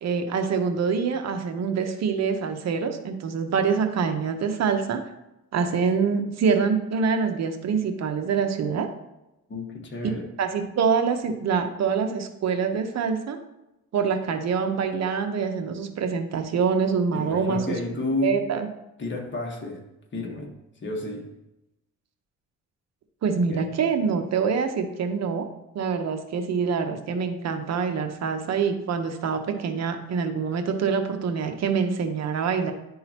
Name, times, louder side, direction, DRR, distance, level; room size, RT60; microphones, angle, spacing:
voice 1, 0.0-5.0 5.5-8.9 10.4-13.4 13.9-17.7 18.2-18.7 23.2-25.5 25.7-32.7, right 5 dB, 60° right, 6 dB, 0.9 m, -25 dB
voice 2, 9.5-10.2 17.1-18.4 19.0-19.8 20.1-20.5 20.8-21.3 23.5-23.6, left 2 dB, 40° left, 1 dB, 1.5 m, -31 dB
10.5 x 3.8 x 3.0 m, 0.92 s
cardioid pair, 90°, 30 cm